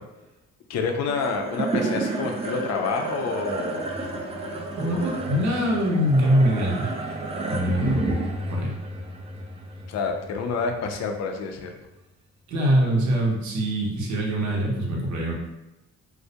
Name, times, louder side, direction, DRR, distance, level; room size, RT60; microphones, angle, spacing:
voice 1, 0.7-3.9 5.0-5.1 9.9-11.7, left 4 dB, 60° left, 4 dB, 0.4 m, -28 dB
sound 1, 1.1-11.6, right 2 dB, 20° right, 0.3 m, -31 dB
voice 2, 4.8-7.1 7.5-8.0 8.5-8.7 12.5-15.3, equal, 65° right, -2 dB, 0.7 m, -23 dB
2.2 x 2.1 x 2.7 m, 1.0 s
cardioid pair, 90°, 30 cm